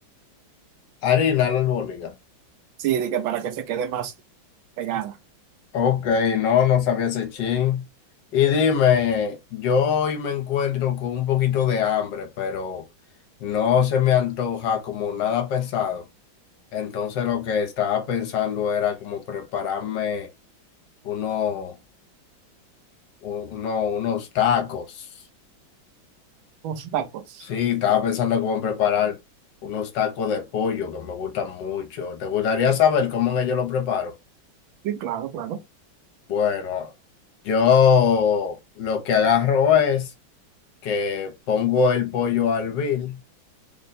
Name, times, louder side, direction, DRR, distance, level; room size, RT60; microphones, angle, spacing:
voice 1, 1.0-2.1 5.7-7.9 8.3-12.8 13.4-16.0 16.7-20.3 21.0-21.7 23.2-25.1 27.5-29.2 29.6-34.1 36.3-36.9 37.4-40.1 40.8-43.2, left 7 dB, 70° left, 1.3 m, -23 dB
voice 2, 2.8-4.1 4.8-5.1 26.6-27.4 34.8-35.6, right 10 dB, 85° right, 1.4 m, -27 dB
3.7 x 2.1 x 4.0 m
omnidirectional pair, 2.2 m